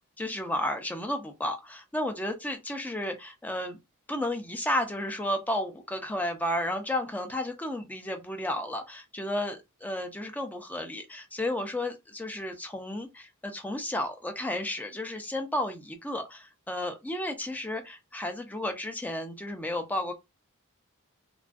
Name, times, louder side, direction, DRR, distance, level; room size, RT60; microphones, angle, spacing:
voice 1, 0.2-3.8 4.1-20.1, left 1 dB, 5° left, 0.4 m, -32 dB
2.5 x 2.3 x 2.3 m
head